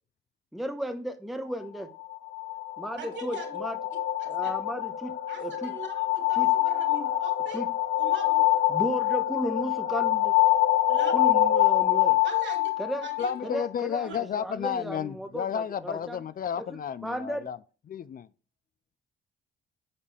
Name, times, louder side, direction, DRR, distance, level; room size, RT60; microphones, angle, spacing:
voice 1, 0.5-1.9 2.8-3.8 4.2-5.7 6.3-6.5 7.5-7.7 8.7-10.4 11.1-12.2 12.8-13.1 13.4-16.2 16.6-16.7 17.0-17.5, equal, ahead, 1.2 m, -34 dB
sound 1, 2.0-13.7, left 14 dB, 65° left, 0.9 m, -25 dB
voice 2, 3.0-3.5 4.2-4.5 5.3-7.6 8.0-8.6 10.9-11.1 12.2-12.7 13.0-13.3 14.0-14.2, right 4 dB, 70° right, 3.2 m, -41 dB
voice 3, 13.2-17.6 17.9-18.3, left 8 dB, 45° left, 0.5 m, -32 dB
9.7 x 7.4 x 3.4 m
cardioid pair, 90°, 20 cm